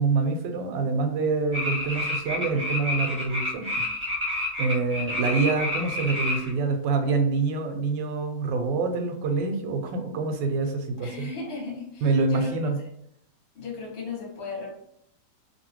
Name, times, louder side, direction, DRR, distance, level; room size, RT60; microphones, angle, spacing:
voice 1, 0.0-3.7 4.6-11.3 12.0-12.8, right 4 dB, 85° right, 5 dB, 1.2 m, -26 dB
sound 1, 1.5-6.5, left 1 dB, 10° right, 1.0 m, -29 dB
voice 2, 11.0-12.5 13.5-14.7, left 3 dB, 40° left, -3 dB, 1.0 m, -36 dB
2.8 x 2.7 x 2.9 m, 0.71 s
omnidirectional pair, 1.9 m